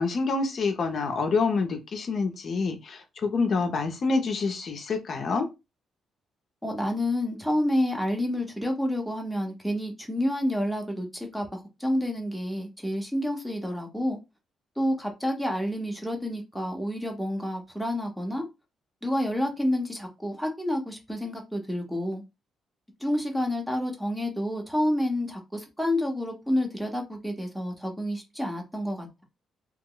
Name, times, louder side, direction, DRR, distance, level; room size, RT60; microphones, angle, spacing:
voice 1, 0.0-5.5, left 4 dB, 45° left, 0.6 m, -27 dB
voice 2, 6.6-14.2 14.8-18.4 19.0-22.2 23.0-29.2, left 1 dB, 5° right, 0.8 m, -29 dB
2.9 x 2.0 x 3.7 m
cardioid pair, 130°, 0 cm